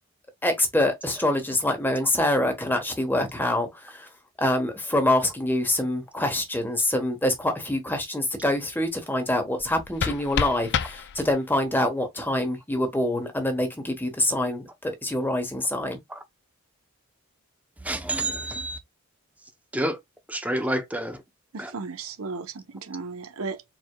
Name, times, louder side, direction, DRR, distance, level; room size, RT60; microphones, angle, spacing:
voice 1, 0.4-4.1 4.4-16.0, left 1 dB, 10° left, 1.2 m, -25 dB
sound 1, 9.6-11.6, left 7 dB, 50° left, 0.4 m, -30 dB
voice 2, 17.8-18.8 19.7-20.0 20.3-21.2 21.6-21.7, right 1 dB, 5° right, 0.7 m, -28 dB
voice 3, 21.5-23.6, right 4 dB, 75° right, 0.8 m, -35 dB
4.7 x 3.9 x 2.3 m
head